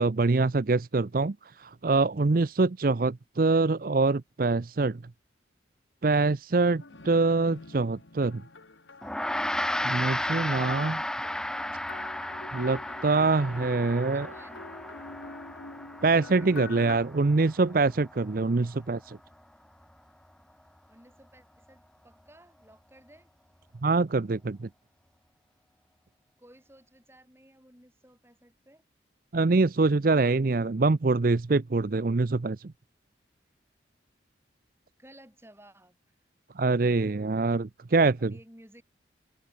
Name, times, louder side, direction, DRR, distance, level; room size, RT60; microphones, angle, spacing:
voice 1, 0.0-5.0 6.0-8.4 9.8-11.0 12.5-14.3 16.0-19.2 23.8-24.7 29.3-32.6 36.6-38.3, right 3 dB, 50° right, 0.6 m, -24 dB
sound 1, 6.8-10.4 11.2-17.0, left 3 dB, 80° left, 1.9 m, -46 dB
voice 2, 6.8-7.1 12.5-13.0 13.9-14.6 18.6-18.9 20.9-23.3 26.4-28.8 35.0-36.2 38.2-38.8, right 1 dB, 15° right, 6.1 m, -56 dB
Gong, 9.0-18.7, left 1 dB, 5° left, 0.4 m, -34 dB
head